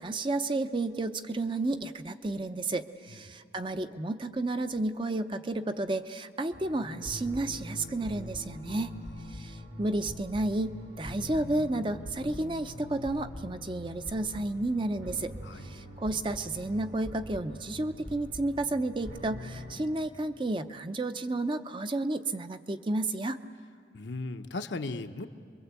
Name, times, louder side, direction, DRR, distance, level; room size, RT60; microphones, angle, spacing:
voice 1, 0.0-8.9 9.3-23.4, right 2 dB, 25° right, 9 dB, 0.6 m, -32 dB
sound 1, 6.5-19.7, left 1 dB, 85° right, 4.6 m, -43 dB
voice 2, 23.9-25.3, left 3 dB, 80° left, 7 dB, 0.9 m, -36 dB
27.5 x 22.5 x 8.2 m, 2.3 s
head